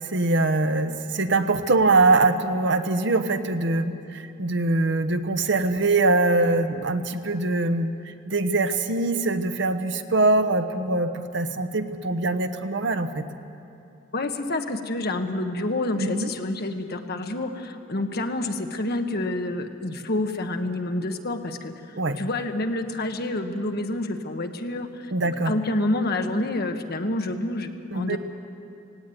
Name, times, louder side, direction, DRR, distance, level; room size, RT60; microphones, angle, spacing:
voice 1, 0.0-7.9 8.3-13.2 15.9-16.3 22.0-22.2 25.1-25.5 27.9-28.2, right 2 dB, 65° right, 8 dB, 1.0 m, -23 dB
voice 2, 14.1-21.7 22.2-28.2, left 2 dB, 55° left, 6 dB, 1.3 m, -28 dB
17.5 x 17.0 x 9.3 m, 2.7 s
head